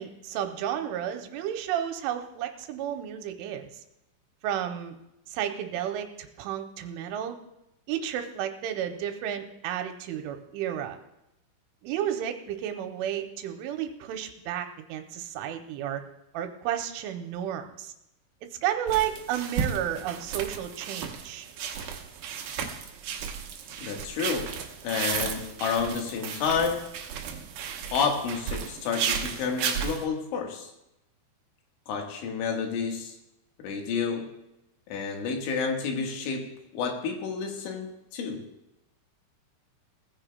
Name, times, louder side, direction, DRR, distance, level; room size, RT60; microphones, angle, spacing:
voice 1, 0.0-3.7 4.4-5.0 5.3-7.4 7.9-11.0 11.8-16.0 16.3-17.9 18.4-21.5, right 10 dB, 85° right, 6 dB, 3.2 m, -32 dB
sound 1, 18.9-30.0, right 7 dB, 70° right, 2.3 m, -34 dB
voice 2, 23.8-24.5 24.8-26.9 27.9-30.7 31.9-33.1 33.6-34.3 34.9-38.4, left 5 dB, 75° left, 2 dB, 3.8 m, -30 dB
19.5 x 15.0 x 2.2 m, 0.88 s
omnidirectional pair, 5.6 m